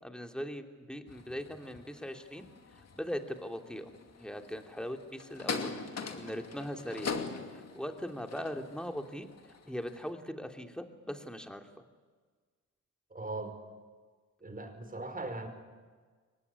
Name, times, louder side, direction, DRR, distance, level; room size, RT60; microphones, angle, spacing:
voice 1, 0.0-2.5 2.9-3.9 4.2-7.2 7.5-9.3 9.7-11.8, equal, 5° left, 5 dB, 3.0 m, -40 dB
sound 1, 1.1-10.1, left 4 dB, 50° left, 2.6 m, -42 dB
voice 2, 13.1-13.6 14.4-15.5, right 2 dB, 25° right, 7 dB, 5.1 m, -39 dB
23.5 x 19.0 x 9.9 m, 1.5 s
cardioid pair, 65°, 32 cm